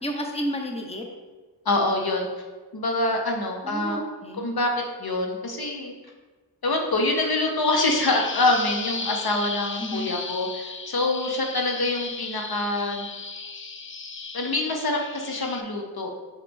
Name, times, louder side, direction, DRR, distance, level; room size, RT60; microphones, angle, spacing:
voice 1, 0.0-1.0 3.6-4.5 9.8-10.1, equal, 15° left, 2 dB, 0.9 m, -31 dB
voice 2, 1.6-2.3 2.7-4.0 4.4-5.9 6.6-13.1 14.3-16.1, left 2 dB, 60° left, 2 dB, 0.9 m, -25 dB
Bird vocalization bird call bird song, 7.6-15.6, left 4 dB, 30° left, 0.5 m, -35 dB
5.7 x 4.8 x 3.5 m, 1.3 s
cardioid pair, 50°, 43 cm